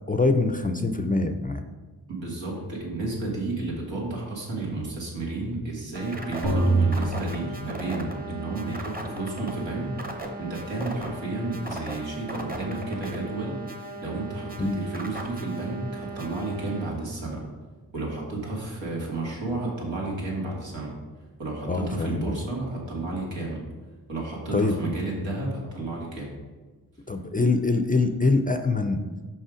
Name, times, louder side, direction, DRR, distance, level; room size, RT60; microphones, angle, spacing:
voice 1, 0.0-1.6 14.6-14.8 21.7-22.4 24.5-24.7 27.1-29.0, left 3 dB, 20° left, 7 dB, 0.5 m, -24 dB
voice 2, 2.1-10.0 10.4-13.6 14.0-17.4 17.9-21.0 21.4-23.6 24.1-26.4, right 2 dB, 80° right, -3 dB, 2.1 m, -32 dB
sound 1, 5.9-16.9, right 2 dB, 20° right, 1.0 m, -37 dB
sound 2, 6.4-8.4, right 2 dB, 65° right, 1.9 m, -26 dB
5.5 x 5.4 x 5.0 m, 1.3 s
cardioid pair, 60°, 44 cm